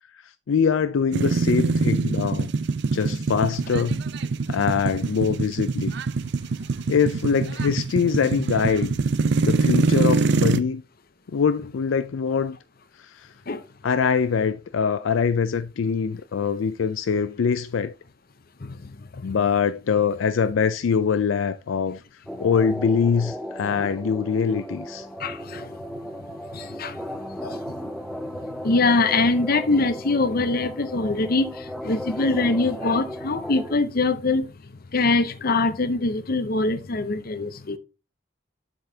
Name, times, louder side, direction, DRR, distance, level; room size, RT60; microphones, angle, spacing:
voice 1, 0.1-2.5 2.9-4.0 4.5-6.0 6.9-8.9 9.4-10.8 11.3-12.6 13.0-13.3 13.8-17.9 19.2-22.0 22.4-25.1, left 6 dB, 75° left, 0.4 m, -23 dB
sound 1, 1.1-10.6, right 4 dB, 60° right, 0.5 m, -24 dB
voice 2, 18.6-19.4 25.2-25.8 26.5-27.9 28.4-34.5 34.9-37.8, left 3 dB, 50° left, 0.8 m, -24 dB
sound 2, 22.3-33.8, equal, ahead, 0.5 m, -36 dB
7.7 x 6.9 x 2.8 m
head